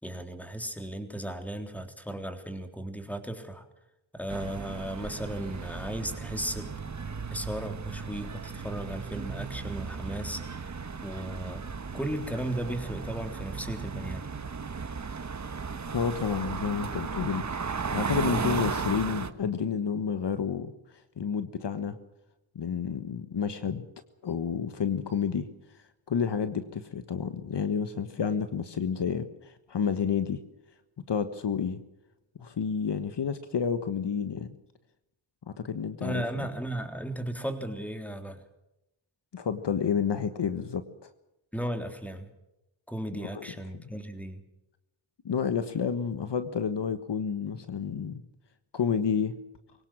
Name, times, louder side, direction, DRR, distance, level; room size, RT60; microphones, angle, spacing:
voice 1, 0.0-3.6 4.1-6.9 7.3-10.4 11.0-11.6 11.9-14.3 36.0-38.4 41.5-42.3 42.9-44.4, right 1 dB, 5° left, 6 dB, 3.5 m, -35 dB
sound 1, 4.3-19.3, right 5 dB, 35° right, 1.4 m, -35 dB
voice 2, 15.9-20.7 21.2-22.0 22.5-23.8 24.2-25.5 26.1-30.4 31.1-31.8 32.4-34.6 35.5-36.5 39.3-40.8 43.1-43.5 45.2-48.2 48.7-49.4, left 6 dB, 55° left, 10 dB, 1.4 m, -30 dB
23.0 x 18.0 x 7.5 m, 0.89 s
cardioid pair, 65°, 50 cm